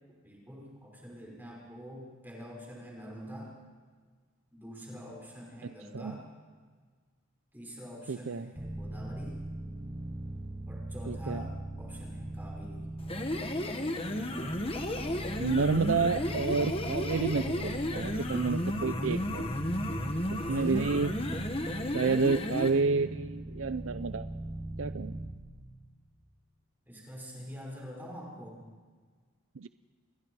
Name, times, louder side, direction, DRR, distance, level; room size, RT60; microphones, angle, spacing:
voice 1, 0.2-3.5 4.5-6.2 7.5-9.4 10.7-12.9 20.3-20.7 26.9-28.6, equal, 10° right, -2 dB, 5.6 m, -46 dB
voice 2, 5.6-6.1 8.1-8.5 11.1-11.4 15.4-19.5 20.3-21.1 21.9-24.3 24.8-25.2 29.6-29.7, right 4 dB, 70° right, 12 dB, 0.6 m, -30 dB
sound 1, 8.5-25.3, right 1 dB, 30° right, 7.7 m, -40 dB
sound 2, 13.0-22.8, left 1 dB, 25° left, 1.5 m, -33 dB
28.5 x 22.5 x 4.8 m, 1.5 s
head